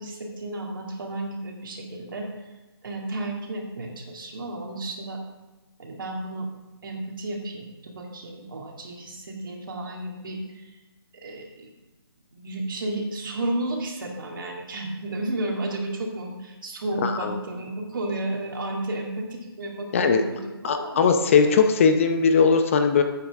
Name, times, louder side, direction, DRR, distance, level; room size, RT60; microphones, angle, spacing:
voice 1, 0.0-2.4 2.8-5.2 5.8-6.5 6.8-10.7 11.1-11.7 12.3-21.0, right 1 dB, 55° right, 0 dB, 2.5 m, -32 dB
voice 2, 17.0-17.3 19.9-20.2 20.6-23.0, left 5 dB, 30° left, 6 dB, 0.8 m, -19 dB
13.5 x 8.7 x 3.6 m, 1.1 s
hypercardioid pair, 160°, 13 cm